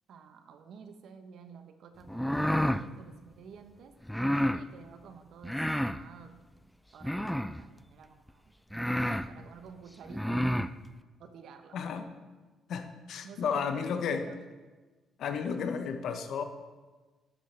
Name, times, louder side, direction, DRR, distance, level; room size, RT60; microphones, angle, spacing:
voice 1, 0.1-4.0 4.5-6.4 6.9-10.5 11.2-11.8 13.2-14.4, right 6 dB, 75° right, 8 dB, 0.8 m, -51 dB
sound 1, 2.1-2.8 4.1-4.6 5.4-6.0 7.0-7.6 8.3-8.4 8.7-9.3 10.1-10.7, equal, 5° left, 0.3 m, -29 dB
voice 2, 11.7-12.1 12.7-14.2 15.2-16.4, left 6 dB, 70° left, 8 dB, 0.8 m, -32 dB
11.0 x 7.4 x 3.3 m, 1.3 s
cardioid pair, 90°, 0 cm